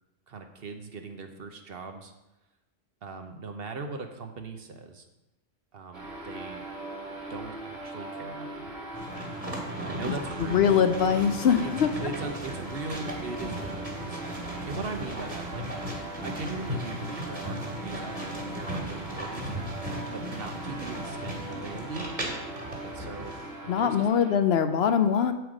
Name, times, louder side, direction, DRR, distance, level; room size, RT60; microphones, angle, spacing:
voice 1, 0.3-2.1 3.0-5.1 5.7-6.7 7.3-8.7 9.8-10.7 11.6-11.7 12.0-14.2 14.6-15.7 16.2-19.7 20.1-22.6 22.9-23.4 23.6-24.1, right 4 dB, 55° right, 5 dB, 1.0 m, -39 dB
sound 1, 5.9-24.3, right 2 dB, 75° right, 3.5 m, -40 dB
sound 2, 8.9-23.5, equal, 40° right, 2.1 m, -37 dB
voice 2, 10.4-11.9 23.7-25.3, left 8 dB, 65° left, 9 dB, 0.7 m, -23 dB
8.1 x 7.9 x 5.0 m, 0.97 s
omnidirectional pair, 1.3 m